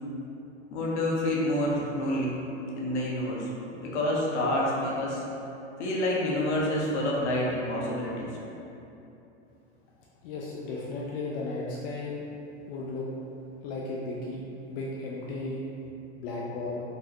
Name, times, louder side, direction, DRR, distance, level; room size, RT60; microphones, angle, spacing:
voice 1, 0.7-2.4 2.8-5.2 5.8-8.4, left 1 dB, 75° left, -4 dB, 0.9 m, -28 dB
voice 2, 10.2-12.1 12.7-13.1 13.6-14.4 14.7-15.6 16.2-16.8, left 3 dB, 55° left, -4 dB, 0.5 m, -35 dB
4.2 x 2.1 x 2.8 m, 2.9 s
hypercardioid pair, 110°, 35 cm